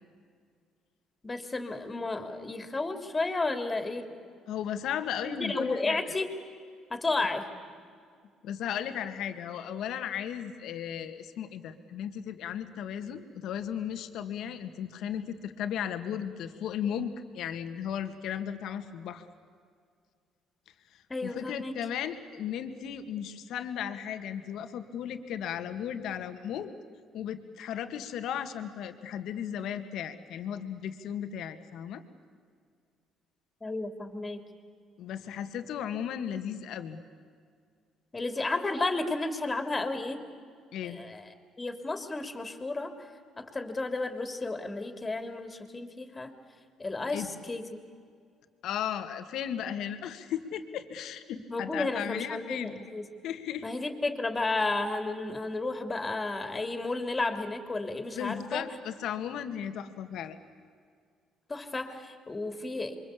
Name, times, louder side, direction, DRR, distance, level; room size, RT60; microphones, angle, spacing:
voice 1, 1.2-4.0 5.2-6.3 6.9-7.5 21.1-21.8 33.6-34.4 38.1-40.2 40.8-41.3 41.6-42.9 43.4-46.3 46.8-47.7 51.5-53.0 53.6-58.6 61.5-63.0, left 3 dB, 20° left, 7 dB, 3.3 m, -32 dB
voice 2, 4.5-6.0 8.4-19.2 20.9-26.7 27.1-32.0 35.0-37.0 40.7-41.0 47.1-47.3 48.6-52.8 53.2-53.6 58.1-60.4, left 9 dB, 70° left, 8 dB, 2.0 m, -35 dB
28.0 x 24.0 x 8.6 m, 2.1 s
cardioid pair, 90°, 0 cm